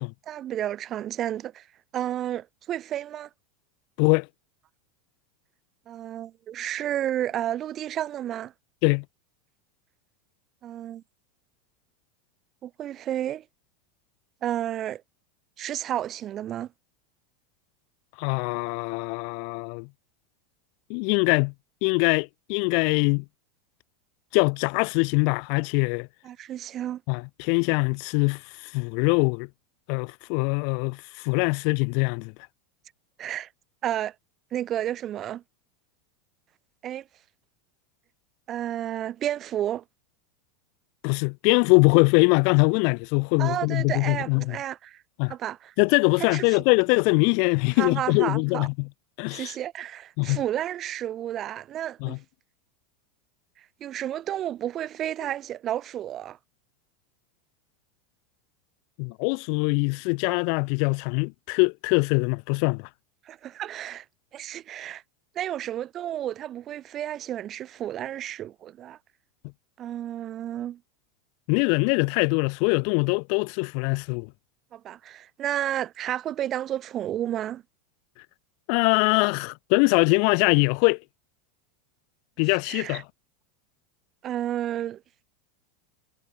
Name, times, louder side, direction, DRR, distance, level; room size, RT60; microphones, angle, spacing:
voice 1, 0.3-1.7 1.9-3.3 5.9-8.5 10.6-11.0 12.6-13.4 14.4-15.0 15.6-16.7 26.2-27.0 33.2-33.5 33.8-34.2 34.5-35.4 36.8-37.1 38.5-39.8 43.4-45.7 46.2-46.6 47.8-48.7 49.3-52.2 53.6-56.4 63.3-64.1 64.3-65.0 65.4-69.0 69.8-70.8 74.7-77.6 82.7-83.0 84.2-85.0, right 11 dB, 35° right, 3.3 m, -31 dB
voice 2, 18.2-19.9 20.9-21.5 21.8-23.2 24.3-26.1 27.1-28.4 28.7-29.5 29.9-32.3 41.0-44.6 45.2-45.3 45.8-48.9 49.2-49.5 50.2-50.4 52.0-52.2 59.0-62.9 71.5-74.3 78.7-81.0 82.4-83.0, left 40 dB or more, 60° left, 0.8 m, -23 dB
supercardioid pair, 120°, 0 cm